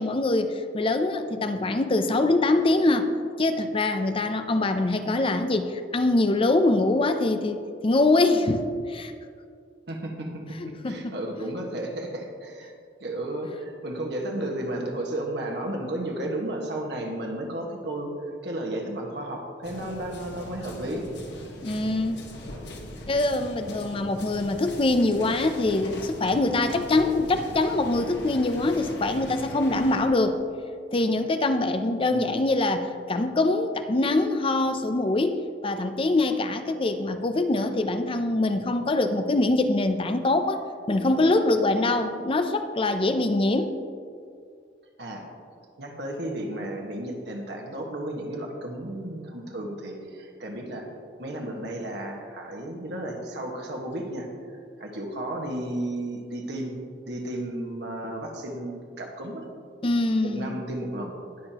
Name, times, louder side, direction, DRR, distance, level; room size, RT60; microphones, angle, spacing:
voice 1, 0.0-3.1 3.4-9.1 10.8-11.1 21.6-22.2 23.1-30.4 30.9-43.7 59.8-60.6, left 2 dB, 30° left, 8 dB, 0.5 m, -24 dB
voice 2, 9.9-12.7 13.0-18.1 18.4-21.0 32.1-32.4 45.0-45.2 45.8-50.9 51.2-56.8 57.1-59.4 60.2-61.1, right 1 dB, 65° right, 1 dB, 1.5 m, -33 dB
sound 1, 19.6-30.0, left 1 dB, 70° left, 1.5 m, -40 dB
19.0 x 6.6 x 2.9 m, 2.2 s
head